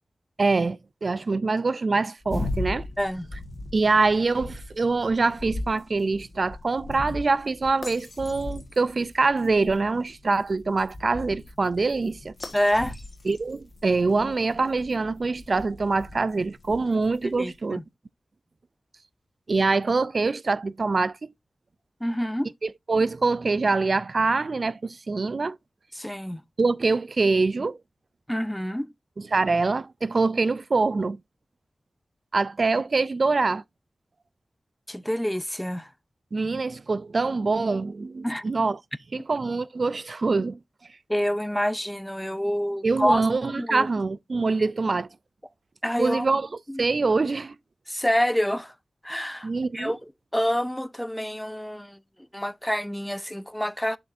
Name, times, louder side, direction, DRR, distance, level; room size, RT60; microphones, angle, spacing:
voice 1, 0.4-2.8 3.7-12.3 13.3-17.8 19.5-21.3 22.6-25.6 26.6-27.8 29.2-31.2 32.3-33.6 36.3-38.8 39.1-40.6 42.8-45.1 46.0-46.5 46.8-47.6 49.4-50.0, right 3 dB, 60° right, 0.3 m, -24 dB
sound 1, 2.2-17.4, left 2 dB, 50° left, 1.4 m, -38 dB
voice 2, 12.5-12.9 17.2-17.8 22.0-22.5 25.9-26.4 28.3-28.9 34.9-35.9 38.2-38.4 41.1-43.9 45.8-46.3 46.7-46.9 47.9-48.7 49.0-49.5 49.7-50.0 50.3-52.0 52.3-54.0, equal, 5° left, 0.5 m, -27 dB
7.4 x 5.9 x 2.6 m
cardioid pair, 55°, 0 cm